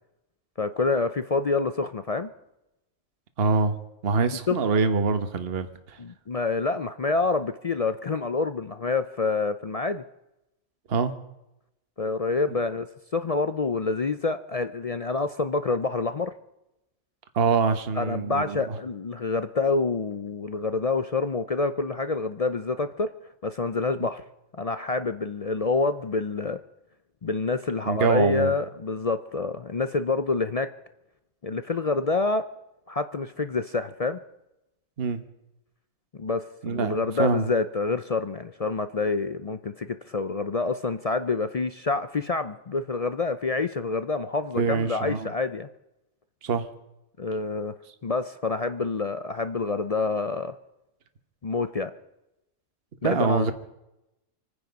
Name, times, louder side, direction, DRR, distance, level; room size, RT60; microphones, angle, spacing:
voice 1, 0.6-2.3 4.5-4.6 6.0-10.0 12.0-16.3 17.9-23.1 23.4-24.2 24.6-26.6 27.2-30.7 31.4-32.5 32.9-34.2 36.1-45.7 47.2-47.7 48.0-50.6 51.4-51.9 53.0-53.5, left 3 dB, 55° left, 11 dB, 0.4 m, -27 dB
voice 2, 3.4-3.8 4.0-6.0 10.9-11.1 17.3-18.8 27.8-28.5 35.0-35.2 36.6-37.5 44.6-45.3 46.4-46.7 53.0-53.5, right 5 dB, 45° right, 9 dB, 1.3 m, -25 dB
27.0 x 9.8 x 5.2 m, 0.90 s
omnidirectional pair, 1.5 m